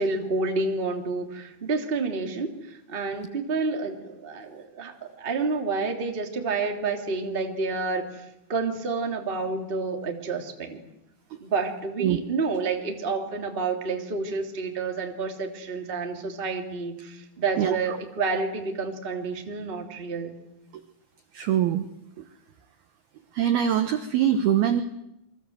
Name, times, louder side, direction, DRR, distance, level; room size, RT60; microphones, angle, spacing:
voice 1, 0.0-10.8 11.4-20.3, right 4 dB, 20° right, 3 dB, 1.7 m, -29 dB
voice 2, 17.6-18.0 21.3-21.9 22.2-22.3 23.3-24.8, right 10 dB, 70° right, 8 dB, 2.4 m, -23 dB
29.0 x 24.0 x 8.0 m, 0.85 s
omnidirectional pair, 6.0 m